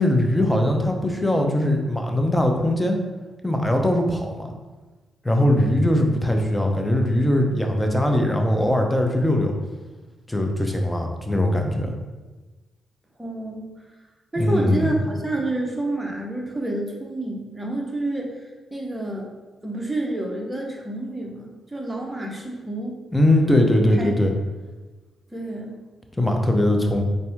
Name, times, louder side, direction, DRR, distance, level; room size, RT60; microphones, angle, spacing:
voice 1, 0.0-3.0 3.4-4.5 5.2-9.5 10.3-11.9 14.4-15.0 23.1-24.3 26.2-27.0, left 1 dB, 10° left, 3 dB, 0.8 m, -20 dB
voice 2, 13.2-13.7 14.3-18.4 18.7-19.3 19.6-23.0 24.0-24.1 25.3-25.8, right 1 dB, 15° right, -1 dB, 1.0 m, -28 dB
4.2 x 2.6 x 3.6 m, 1.2 s
supercardioid pair, 50°, 0 cm